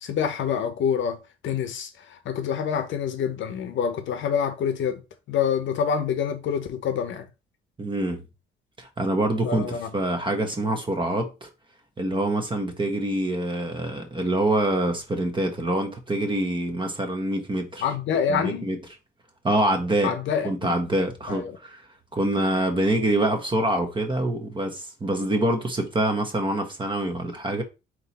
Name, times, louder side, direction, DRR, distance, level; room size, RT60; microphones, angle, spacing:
voice 1, 0.0-1.2 1.4-5.0 5.3-7.3 9.4-9.9 17.8-18.7 20.0-20.7 21.3-21.6, left 7 dB, 70° left, 0.8 m, -26 dB
voice 2, 7.8-8.2 8.8-11.5 12.0-17.8 18.3-18.8 19.4-20.1 20.4-21.8 22.1-27.6, right 1 dB, 25° right, 1.2 m, -25 dB
3.7 x 3.0 x 4.1 m
cardioid pair, 90°, 20 cm